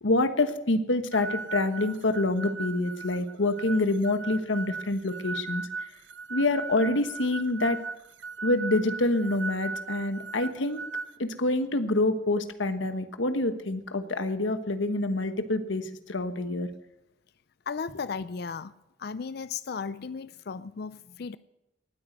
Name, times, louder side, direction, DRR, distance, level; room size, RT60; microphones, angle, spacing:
voice 1, 0.0-5.6 6.3-7.8 8.4-10.8 11.2-16.7, left 2 dB, 85° left, 1.3 m, -27 dB
sound 1, 1.1-11.1, right 4 dB, 70° right, 0.6 m, -38 dB
voice 2, 17.7-18.7 19.0-21.4, left 5 dB, 55° left, 0.5 m, -35 dB
18.5 x 9.3 x 8.0 m
head